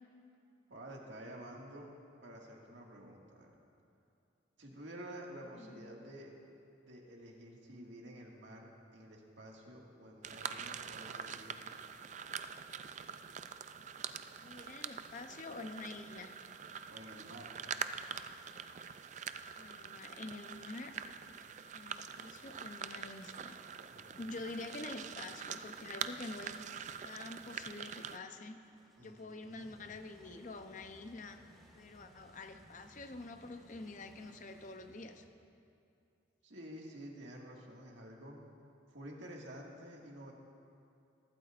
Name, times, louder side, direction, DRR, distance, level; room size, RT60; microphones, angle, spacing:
voice 1, 0.7-3.5 4.6-6.4 6.8-11.6 16.9-17.5 23.9-24.2 29.0-29.7 36.4-38.4 38.9-40.3, right 1 dB, 70° right, -2 dB, 1.9 m, -50 dB
voice 2, 5.5-5.9 14.4-16.4 19.5-21.0 21.7-23.6 24.2-28.6 29.0-31.4 31.7-35.2, left 2 dB, 40° left, 7 dB, 0.6 m, -47 dB
sound 1, 10.2-28.2, right 7 dB, 40° right, 0.3 m, -45 dB
sound 2, 20.1-27.1 28.3-35.6, equal, ahead, 1.7 m, -65 dB
22.5 x 12.0 x 2.5 m, 2.6 s
head